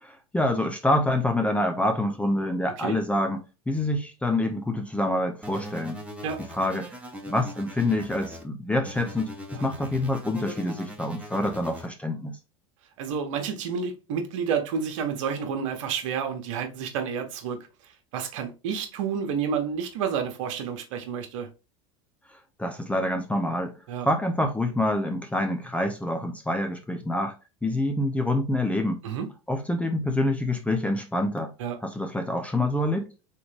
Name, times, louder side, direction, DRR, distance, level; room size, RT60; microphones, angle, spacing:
voice 1, 0.0-6.0 6.5-6.9 7.3-12.4 22.6-23.8 24.0-27.3 27.6-29.0 29.5-31.5 31.8-33.1, left 1 dB, 10° left, 0.7 m, -26 dB
sound 1, 5.4-8.4 8.8-11.9, equal, 10° right, 1.3 m, -41 dB
voice 2, 13.0-17.6 18.1-21.5 23.9-24.1 29.0-29.3 31.6-31.7, right 7 dB, 70° right, 1.2 m, -30 dB
3.8 x 3.6 x 3.4 m
hypercardioid pair, 95°, 17 cm